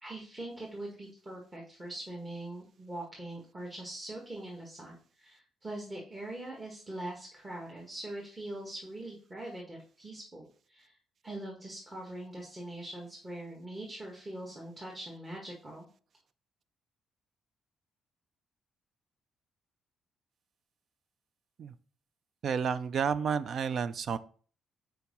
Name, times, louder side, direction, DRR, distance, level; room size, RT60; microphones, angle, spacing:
voice 1, 0.0-11.0 11.2-15.9, right 1 dB, 25° right, -2 dB, 1.6 m, -42 dB
voice 2, 22.4-24.2, right 6 dB, 55° right, 15 dB, 0.4 m, -31 dB
4.6 x 4.5 x 5.4 m, 0.43 s
cardioid pair, 90°, 0 cm